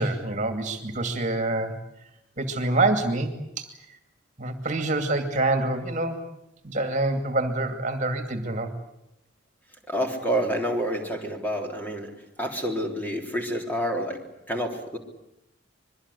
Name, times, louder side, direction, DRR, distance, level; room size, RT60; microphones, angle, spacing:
voice 1, 0.0-1.7 2.4-3.3 3.6-3.7 4.4-6.2 6.6-8.7, right 2 dB, 35° right, 6 dB, 2.5 m, -26 dB
voice 2, 9.9-12.1 12.4-15.0, equal, 10° left, 2 dB, 3.5 m, -28 dB
25.0 x 23.0 x 8.4 m, 0.86 s
head